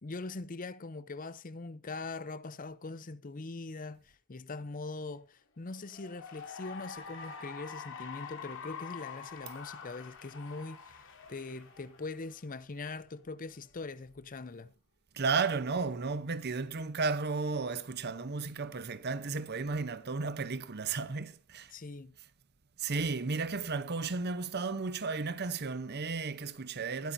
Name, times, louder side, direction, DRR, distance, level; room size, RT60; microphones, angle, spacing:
voice 1, 0.0-14.7 21.7-22.1, left 3 dB, 40° left, 0.6 m, -42 dB
Cheering / Applause, 5.8-12.5, left 6 dB, 60° left, 2.9 m, -46 dB
voice 2, 15.1-21.7 22.8-27.1, right 4 dB, 50° right, 0.8 m, -33 dB
20.0 x 8.6 x 2.7 m
head